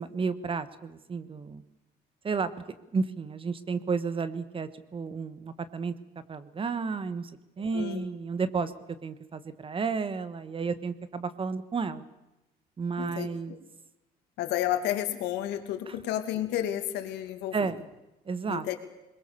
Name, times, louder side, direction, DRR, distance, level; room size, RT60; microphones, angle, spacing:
voice 1, 0.0-1.6 2.2-2.5 2.9-7.3 7.6-8.7 9.0-12.0 12.8-13.6 15.9-16.0 17.5-17.8 18.2-18.7, right 5 dB, 30° right, 13 dB, 1.5 m, -32 dB
voice 2, 7.7-8.0 13.0-13.6 14.4-17.7 18.5-18.7, left 12 dB, 85° left, 7 dB, 2.5 m, -31 dB
22.0 x 21.5 x 7.0 m, 0.97 s
cardioid pair, 110°, 17 cm